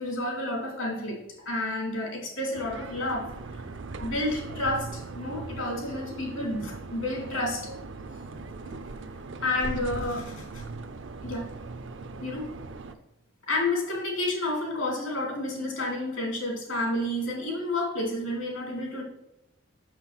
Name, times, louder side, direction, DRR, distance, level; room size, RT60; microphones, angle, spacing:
voice 1, 0.0-3.6 4.0-7.7 8.3-8.7 9.4-11.0 11.2-11.5 12.2-12.5 13.5-19.0, left 1 dB, 85° left, -1 dB, 3.0 m, -30 dB
sound 1, 2.5-12.9, right 3 dB, 65° right, 0.6 m, -39 dB
6.4 x 6.0 x 5.9 m, 0.91 s
head